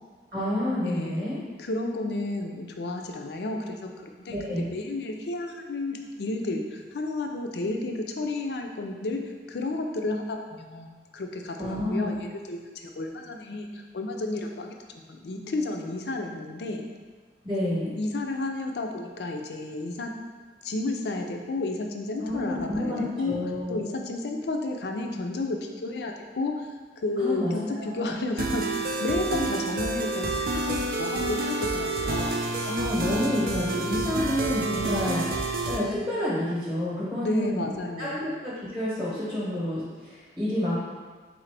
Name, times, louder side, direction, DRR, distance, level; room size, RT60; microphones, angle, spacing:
voice 1, 0.3-1.4 4.3-4.7 11.6-12.2 17.4-17.9 22.2-23.8 27.2-28.0 32.6-35.3 35.7-37.7 38.0-40.8, left 1 dB, 20° right, -8 dB, 0.8 m, -29 dB
voice 2, 0.8-4.4 4.7-14.7 15.1-16.9 17.9-20.2 20.6-32.3 37.2-38.2, left 2 dB, 70° left, 4 dB, 0.4 m, -32 dB
sound 1, 28.4-35.8, right 2 dB, 55° right, 0.4 m, -29 dB
3.9 x 3.8 x 3.3 m, 1.4 s
head